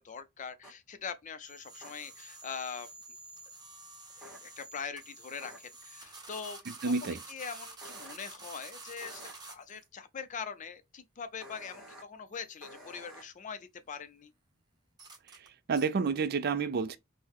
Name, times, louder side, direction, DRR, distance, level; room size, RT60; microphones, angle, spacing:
voice 1, 0.0-2.9 4.2-14.3, left 6 dB, 40° left, 0.4 m, -43 dB
sound 1, 0.6-0.7 1.8-1.9 4.2-4.4 5.4-5.6 7.8-8.1 9.0-9.3 11.4-12.0 12.6-13.2, equal, 5° right, 1.3 m, -50 dB
sound 2, 1.4-9.9 12.3-12.6 15.0-15.5 15.7-15.9, right 3 dB, 20° right, 0.9 m, -49 dB
voice 2, 6.7-7.2 15.7-17.0, right 4 dB, 50° right, 0.4 m, -29 dB
3.8 x 2.1 x 2.9 m
head